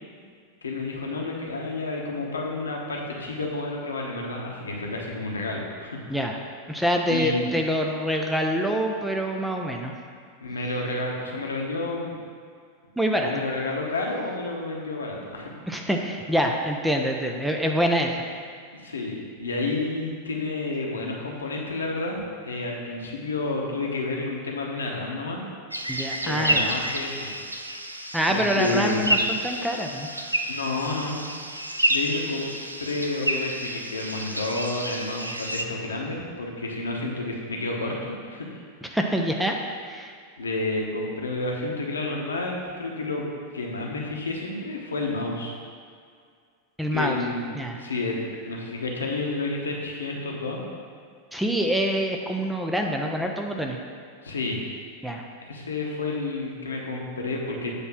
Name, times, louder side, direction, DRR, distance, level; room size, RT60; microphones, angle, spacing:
voice 1, 0.6-6.0 7.1-7.5 10.4-12.1 13.2-15.5 18.7-25.4 26.2-27.3 28.3-29.3 30.5-31.2 31.9-32.5 32.8-38.6 40.4-43.2 43.5-45.5 46.9-47.5 47.8-50.6 54.2-54.7 55.4-57.7, left 2 dB, 75° left, -1 dB, 1.0 m, -30 dB
voice 2, 6.7-9.9 13.0-13.4 15.7-18.1 25.9-26.8 28.1-30.1 38.8-39.6 39.8-40.1 46.8-47.2 47.5-47.8 51.3-53.8 55.0-55.2, equal, 5° right, 1 dB, 0.6 m, -25 dB
sound 1, 25.7-35.7, right 1 dB, 85° right, 0.4 m, -29 dB
8.0 x 3.2 x 5.9 m, 2.1 s
figure-of-eight pair, 90°, 0 cm